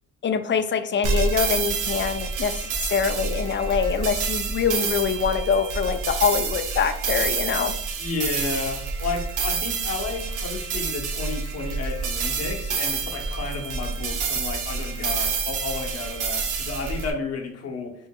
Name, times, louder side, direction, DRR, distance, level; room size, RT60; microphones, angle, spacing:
voice 1, 0.2-7.7, left 6 dB, 40° left, 9 dB, 0.5 m, -24 dB
sound 1, 1.0-17.1, right 5 dB, 90° right, 0.8 m, -28 dB
voice 2, 8.0-18.0, left 4 dB, 55° left, 4 dB, 0.9 m, -32 dB
4.7 x 3.8 x 2.3 m, 0.79 s
cardioid pair, 90°, 30 cm